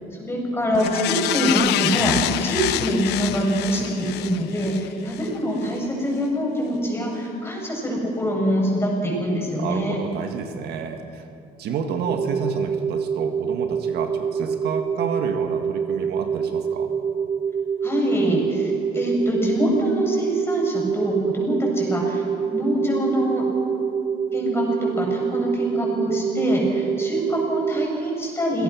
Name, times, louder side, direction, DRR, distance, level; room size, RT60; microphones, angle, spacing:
voice 1, 0.2-10.0 17.8-22.2 22.5-23.4 24.3-28.6, equal, 15° left, -2 dB, 7.3 m, -24 dB
sound 1, 0.7-5.3 5.7-5.8, left 13 dB, 85° left, 0.8 m, -26 dB
voice 2, 9.5-11.3 11.6-16.9, right 6 dB, 75° right, 6 dB, 1.8 m, -30 dB
sound 2, 12.1-27.9, right 6 dB, 35° right, 1.0 m, -26 dB
27.0 x 18.0 x 6.2 m, 2.6 s
cardioid pair, 110°, 17 cm